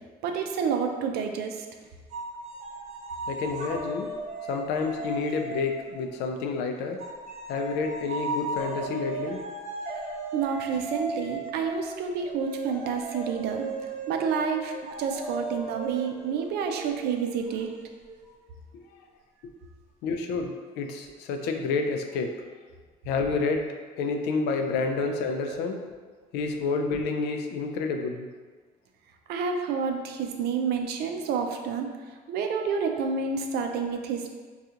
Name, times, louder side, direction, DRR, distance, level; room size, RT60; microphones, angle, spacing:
voice 1, 0.2-1.7 10.3-13.7 14.1-14.7 15.0-17.7 25.5-25.6 29.3-31.9 32.3-34.3, right 6 dB, 75° right, 4 dB, 0.4 m, -29 dB
sound 1, 2.1-6.5 7.0-18.4, right 3 dB, 40° right, 0.7 m, -36 dB
voice 2, 3.3-4.1 4.5-7.0 7.5-9.4 18.7-18.8 20.0-22.4 23.0-23.7 24.0-25.8 26.3-28.3, left 4 dB, 85° left, 4 dB, 0.4 m, -29 dB
3.6 x 2.3 x 2.8 m, 1.5 s
cardioid pair, 110°, 17 cm